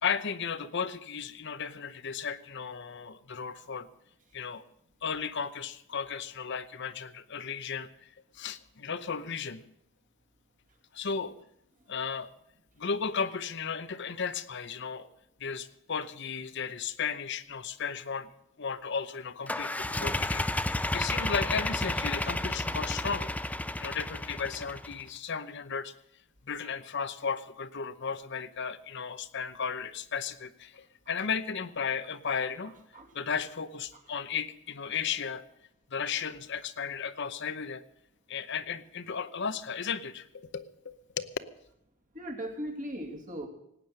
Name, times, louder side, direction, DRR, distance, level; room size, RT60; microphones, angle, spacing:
voice 1, 0.0-3.9 4.3-4.6 5.0-7.9 8.3-9.6 10.9-11.4 11.9-12.3 12.8-15.1 15.4-18.3 18.6-23.3 23.8-25.9 26.5-32.7 33.1-35.4 35.9-37.8 38.3-41.3, left 6 dB, 55° left, 13 dB, 0.8 m, -35 dB
sound 1, 19.5-25.0, left 1 dB, 5° left, 0.4 m, -32 dB
voice 2, 32.9-33.3 42.1-43.5, equal, 35° right, 2 dB, 2.6 m, -38 dB
18.5 x 9.1 x 6.6 m, 0.78 s
head